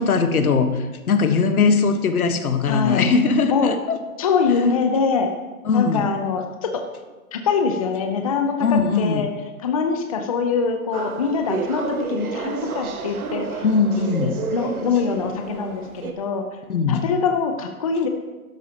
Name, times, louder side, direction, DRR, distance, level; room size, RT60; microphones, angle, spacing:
voice 1, 0.0-4.0 5.6-6.1 8.6-9.3 13.6-14.4 16.7-17.0, left 4 dB, 80° left, 7 dB, 1.4 m, -20 dB
voice 2, 2.6-3.0 3.5-3.7 4.2-5.3 5.7-6.8 7.3-9.3 9.6-13.6 14.2-16.6 16.9-18.1, left 5 dB, 25° left, 5 dB, 0.6 m, -23 dB
sound 1, 10.9-16.1, right 4 dB, 75° right, 1.5 m, -30 dB
12.0 x 11.5 x 2.9 m, 1.2 s
hypercardioid pair, 160°, 43 cm